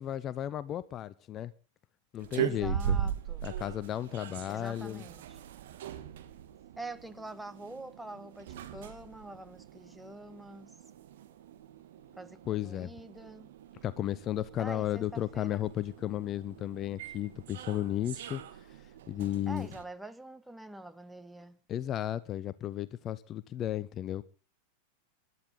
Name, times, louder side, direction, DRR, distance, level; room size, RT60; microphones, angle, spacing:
voice 1, 0.0-1.5 2.1-2.8 3.4-5.0 12.5-12.9 13.8-18.4 19.1-19.7 21.7-24.2, left 12 dB, 30° left, 0.6 m, -34 dB
sound 1, 2.2-19.8, right 9 dB, 55° right, 1.4 m, -40 dB
voice 2, 2.4-3.6 4.5-5.4 6.8-10.7 12.2-13.5 14.6-15.6 19.5-21.6, right 2 dB, 5° right, 0.9 m, -45 dB
22.0 x 11.0 x 4.1 m
figure-of-eight pair, 90°, 0 cm